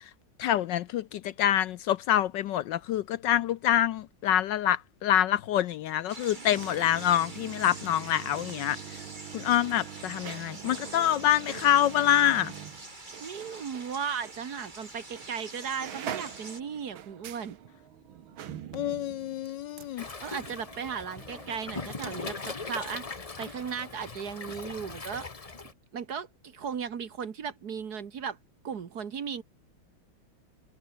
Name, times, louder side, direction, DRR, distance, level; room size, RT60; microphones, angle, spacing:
voice 1, 0.4-8.8 9.3-12.5 18.7-20.1, left 11 dB, 70° left, 1.2 m, -26 dB
sound 1, 6.1-16.6, right 2 dB, 20° right, 2.9 m, -45 dB
sound 2, 6.1-13.9 14.2-14.4 15.1-15.3 15.6-22.1 22.4-22.5, right 10 dB, 80° right, 2.0 m, -44 dB
voice 2, 13.2-17.6 20.0-25.3 25.9-28.4 28.6-29.4, right 7 dB, 50° right, 1.8 m, -36 dB
Waves surf, 20.0-25.7, left 4 dB, 25° left, 0.9 m, -40 dB
omnidirectional pair, 2.2 m